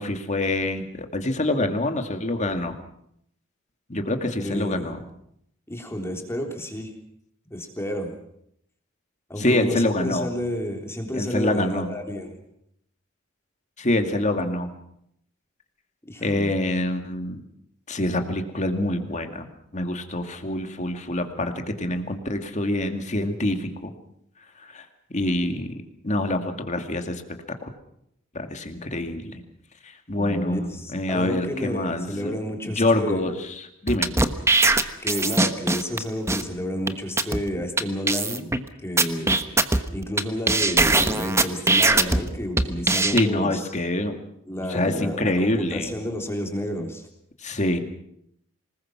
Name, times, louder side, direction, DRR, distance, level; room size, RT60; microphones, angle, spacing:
voice 1, 0.0-2.8 3.9-5.0 9.4-10.3 11.1-11.9 13.8-14.7 16.2-17.4 17.9-19.5 19.7-23.9 24.7-24.8 25.1-25.8 26.0-27.2 27.6-27.7 28.3-29.4 30.1-32.3 32.6-34.1 43.1-44.2 44.7-46.0 47.4-47.8, left 1 dB, 35° left, 6 dB, 2.3 m, -26 dB
voice 2, 4.4-5.0 5.7-6.9 7.5-8.1 9.3-12.4 16.1-16.5 30.1-33.3 35.0-38.5 38.8-39.4 39.9-43.7 44.5-47.1, equal, 15° left, 2 dB, 3.5 m, -30 dB
sound 1, 33.9-36.0 36.3-36.4 36.9-37.0 37.2-37.4 37.8-37.9 38.1-38.6 39.0-40.2 40.5-42.2 42.6-43.2, right 3 dB, 15° right, 1.2 m, -20 dB
26.0 x 20.5 x 6.1 m, 0.74 s
head